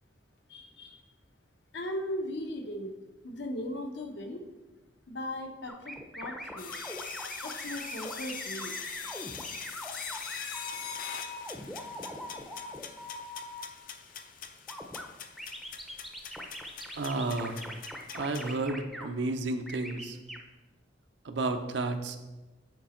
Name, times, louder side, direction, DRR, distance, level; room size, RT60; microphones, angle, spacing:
voice 1, 0.5-1.0 1.7-2.9 3.2-4.4 5.1-6.9 7.4-8.7, left 1 dB, 70° left, 5 dB, 0.9 m, -38 dB
sound 1, 5.7-13.6 14.7-15.0 15.4-19.1 19.7-20.4, equal, ahead, 0.6 m, -41 dB
sound 2, 6.6-18.5, left 7 dB, 50° left, 0.5 m, -43 dB
voice 2, 17.0-17.6 18.1-20.2 21.2-22.2, right 3 dB, 75° right, 7 dB, 0.6 m, -32 dB
8.0 x 4.9 x 4.3 m, 1.1 s
head